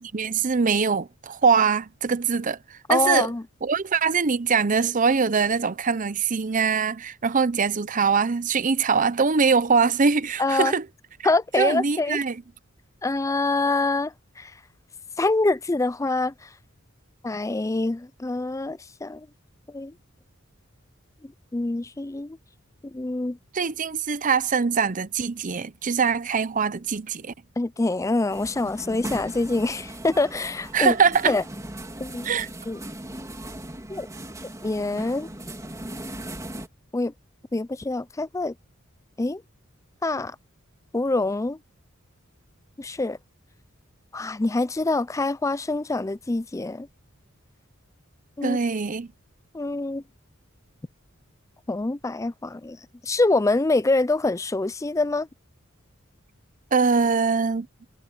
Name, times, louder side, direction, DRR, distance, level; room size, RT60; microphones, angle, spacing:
voice 1, 0.0-3.3 3.6-10.9 11.6-12.4 23.5-27.3 30.7-31.4 32.2-32.5 48.4-49.1 56.7-57.7, right 5 dB, 40° right, 0.7 m, -23 dB
voice 2, 2.9-3.4 10.4-10.7 11.2-12.2 13.0-14.5 15.2-16.5 17.2-19.3 19.7-19.9 21.2-22.4 22.8-23.4 27.6-31.0 31.2-31.4 32.0-32.3 32.7-32.8 33.9-34.1 34.6-35.3 36.9-37.1 37.5-38.5 39.2-39.4 40.0-40.4 40.9-41.6 42.8-43.2 44.1-46.9 48.4-48.6 49.5-50.0 51.7-52.8 53.0-55.3, left 2 dB, 15° left, 0.4 m, -25 dB
sound 1, 28.3-36.7, right 1 dB, 15° right, 3.3 m, -38 dB
head